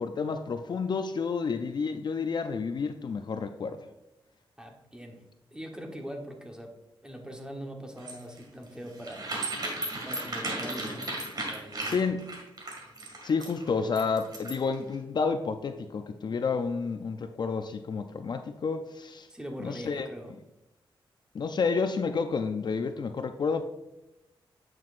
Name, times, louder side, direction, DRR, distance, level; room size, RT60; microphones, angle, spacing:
voice 1, 0.0-3.8 11.9-12.3 13.2-19.3 19.6-20.1 21.3-23.6, left 5 dB, 50° left, 8 dB, 0.4 m, -30 dB
voice 2, 4.6-5.2 5.5-6.7 7.0-9.3 10.0-12.1 19.3-20.3, equal, 10° right, 2 dB, 1.1 m, -42 dB
sound 1, 8.0-14.7, right 2 dB, 50° right, 2.1 m, -35 dB
9.2 x 6.1 x 2.5 m, 0.92 s
cardioid pair, 95°, 9 cm